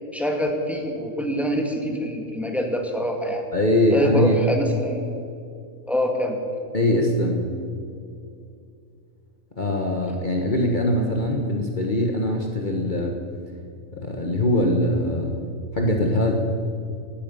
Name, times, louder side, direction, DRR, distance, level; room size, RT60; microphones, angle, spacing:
voice 1, 0.1-3.4 3.9-5.1 5.9-6.4, equal, ahead, 2 dB, 2.2 m, -25 dB
voice 2, 3.5-4.3 6.7-7.5 9.6-13.2 13.9-15.3 15.7-16.3, left 1 dB, 35° left, 1 dB, 1.5 m, -22 dB
18.0 x 13.5 x 5.6 m, 2.6 s
omnidirectional pair, 1.4 m